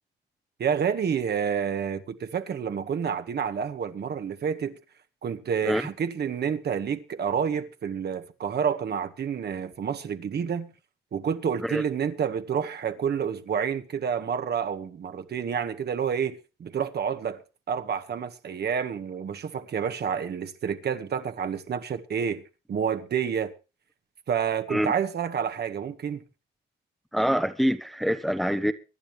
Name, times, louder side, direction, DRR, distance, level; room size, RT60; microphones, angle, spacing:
voice 1, 0.6-4.8 5.2-10.7 11.1-17.4 17.7-22.4 22.7-23.5 24.3-26.2, right 7 dB, 55° right, 1.9 m, -29 dB
voice 2, 27.1-28.7, equal, ahead, 1.2 m, -25 dB
24.5 x 10.5 x 3.4 m
cardioid pair, 90°, 20 cm